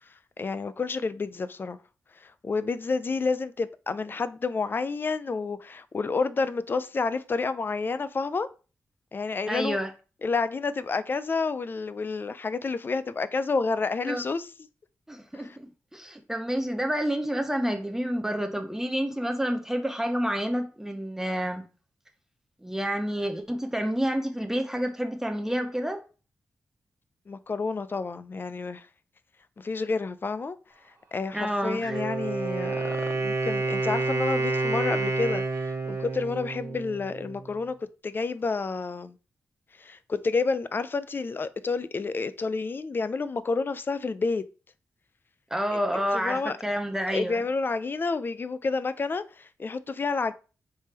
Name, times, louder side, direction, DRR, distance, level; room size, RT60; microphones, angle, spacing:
voice 1, 0.4-1.8 2.2-8.5 9.1-9.8 10.2-14.5 15.3-15.6 27.3-28.9 29.6-30.6 31.1-39.2 39.8-44.5 45.7-45.8 46.1-46.6 47.1-50.3, left 4 dB, 40° left, 0.3 m, -29 dB
voice 2, 9.5-9.9 14.1-14.2 15.1-21.6 22.6-26.0 31.3-32.0 45.5-47.4, equal, 10° right, 0.6 m, -29 dB
Wind instrument woodwind instrument, 31.8-37.5, right 3 dB, 60° right, 1.0 m, -29 dB
3.5 x 3.3 x 4.2 m
wide cardioid pair, 90°, 6 cm